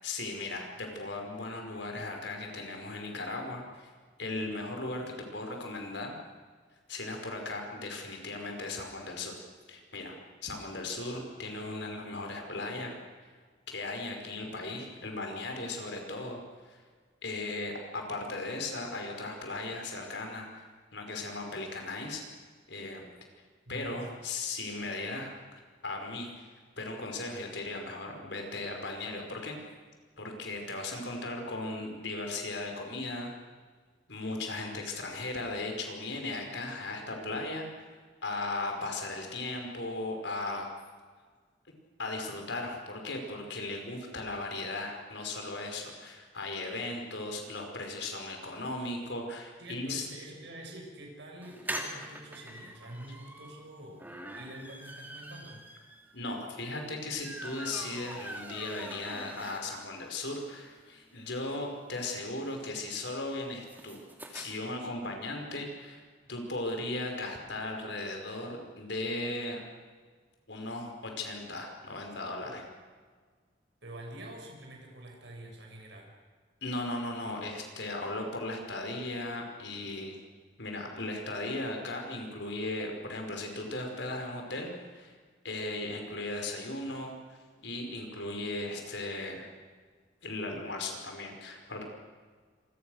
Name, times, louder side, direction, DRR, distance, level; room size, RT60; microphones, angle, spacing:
voice 1, 0.0-3.9 4.2-5.0 5.3-6.2 6.9-9.4 9.7-10.2 10.4-13.0 13.7-16.8 17.2-20.6 20.9-22.2 22.7-23.1 23.7-26.5 26.8-29.6 30.2-33.3 34.1-38.0 38.2-40.7 42.0-50.1 56.1-64.0 64.3-66.0 66.3-69.7 70.5-72.6 76.6-80.2 80.6-85.1 85.4-89.5 90.2-91.8, left 2 dB, 65° left, 3 dB, 5.4 m, -37 dB
voice 2, 23.7-24.0 49.6-55.6 73.8-76.1, right 1 dB, 65° right, 1 dB, 6.9 m, -46 dB
sound 1, 51.4-60.0 60.4-60.5 60.7-60.8 61.1-64.5, right 1 dB, 10° right, 2.8 m, -44 dB
27.5 x 24.5 x 6.6 m, 1.5 s
head